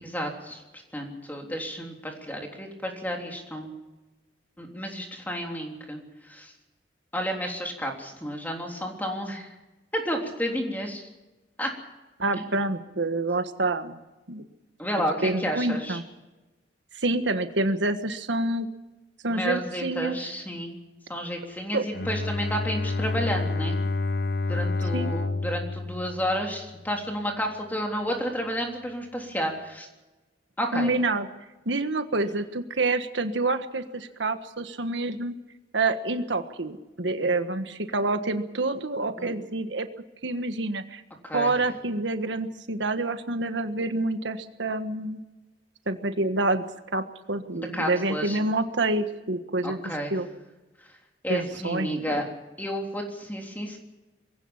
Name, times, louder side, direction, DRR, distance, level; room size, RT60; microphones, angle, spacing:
voice 1, 0.0-3.7 4.6-6.5 7.1-9.5 9.9-11.1 11.6-11.7 14.8-16.0 19.3-20.8 21.1-23.8 24.5-29.9 30.6-30.9 39.2-39.3 41.2-41.5 47.5-48.4 49.6-50.1 51.2-52.3 52.6-53.8, equal, 10° left, 1 dB, 3.5 m, -31 dB
voice 2, 12.2-14.0 14.3-14.4 15.2-16.0 16.9-18.7 19.2-20.3 21.7-21.8 24.9-25.1 30.7-31.3 31.6-35.3 35.7-39.9 40.2-41.0 41.3-45.2 45.9-46.7 46.9-49.8 50.1-50.3 51.3-52.2, right 2 dB, 85° right, 8 dB, 1.5 m, -27 dB
Bowed string instrument, 21.9-26.9, left 3 dB, 60° left, 1.0 m, -29 dB
23.0 x 16.5 x 7.3 m, 1.1 s
head